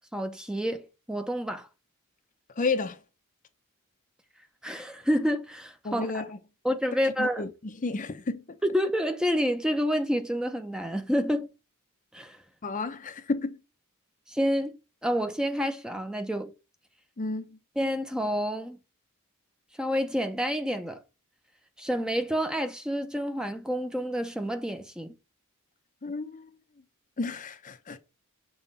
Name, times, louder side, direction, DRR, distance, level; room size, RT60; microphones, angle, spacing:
voice 1, 0.1-1.7 4.6-6.1 6.6-7.4 8.6-11.5 12.1-12.4 14.3-14.8 15.0-16.5 17.8-18.8 19.8-21.0 21.8-25.1, equal, 5° right, 0.6 m, -28 dB
voice 2, 2.6-3.0 5.8-6.4 7.2-8.6 12.6-13.6 17.2-17.6 26.0-26.5 27.2-28.0, left 3 dB, 35° left, 0.6 m, -32 dB
7.0 x 3.1 x 5.4 m
head